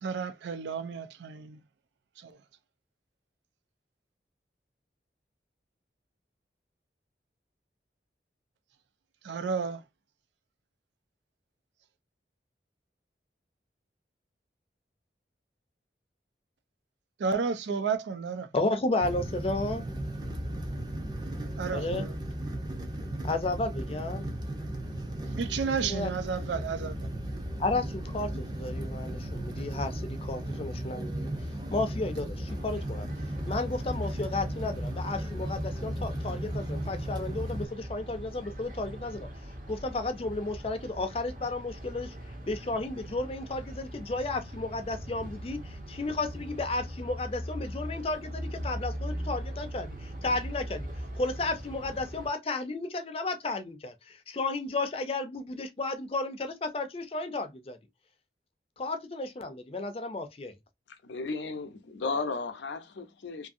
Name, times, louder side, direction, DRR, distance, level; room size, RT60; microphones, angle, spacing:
voice 1, 0.0-1.6 2.2-2.4 9.2-9.8 17.2-18.5 21.6-22.1 25.3-27.1, right 5 dB, 85° right, 0.4 m, -32 dB
voice 2, 18.5-19.9 21.7-22.1 23.2-24.3 25.8-26.1 27.6-31.3 31.7-33.1 33.5-39.3 39.7-42.2 42.5-50.9 51.2-57.8 58.8-60.5, left 2 dB, 35° left, 0.4 m, -33 dB
sound 1, 19.0-37.7, right 1 dB, 25° right, 0.5 m, -35 dB
sound 2, 32.5-52.3, equal, 50° right, 0.8 m, -41 dB
voice 3, 60.9-63.5, left 4 dB, 90° left, 0.6 m, -35 dB
2.6 x 2.6 x 2.5 m
head